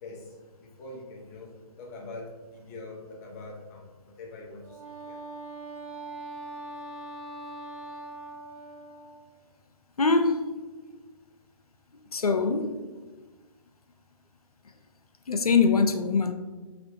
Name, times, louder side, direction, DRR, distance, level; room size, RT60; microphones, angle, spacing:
voice 1, 0.0-1.5 1.8-4.8 5.1-5.2, left 2 dB, 25° left, 0.7 m, -43 dB
Wind instrument woodwind instrument, 4.6-9.3, right 2 dB, 75° right, 1.1 m, -41 dB
voice 2, 10.0-10.4 12.1-12.8 15.3-16.3, left 4 dB, 85° left, 0.5 m, -23 dB
3.4 x 2.6 x 3.8 m
figure-of-eight pair, 135°, 18 cm